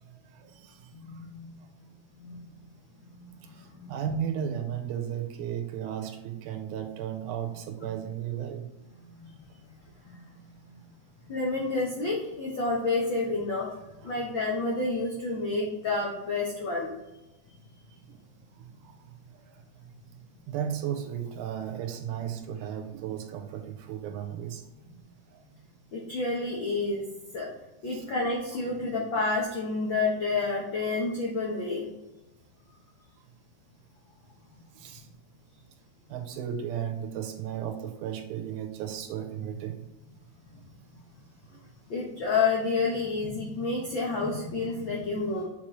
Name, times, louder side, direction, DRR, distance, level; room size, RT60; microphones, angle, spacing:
voice 1, 0.1-0.9 3.9-8.7 18.1-18.2 18.6-19.0 20.5-24.6 25.3-25.4 27.9-28.1 34.7-35.1 36.1-39.8, right 9 dB, 80° right, 5 dB, 2.1 m, -34 dB
voice 2, 0.9-1.5 2.2-2.4 3.1-3.9 9.2-9.7 10.0-10.2 11.3-13.7 14.0-16.9 25.9-27.1 27.3-27.5 27.8-31.9 41.9-45.5, left 3 dB, 80° left, -3 dB, 1.0 m, -29 dB
7.4 x 4.1 x 3.1 m, 1.0 s
omnidirectional pair, 3.7 m